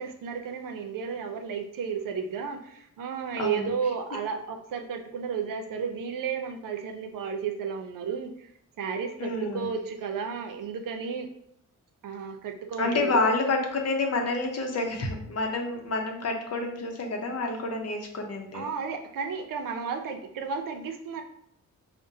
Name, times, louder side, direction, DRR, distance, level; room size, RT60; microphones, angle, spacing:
voice 1, 0.0-8.5 8.8-11.3 12.0-13.4 18.5-21.2, right 6 dB, 85° right, 5 dB, 0.6 m, -33 dB
voice 2, 3.4-3.7 9.2-9.7 12.8-18.7, left 3 dB, 50° left, 2 dB, 0.7 m, -28 dB
5.0 x 2.1 x 2.7 m, 0.71 s
wide cardioid pair, 130°, 32 cm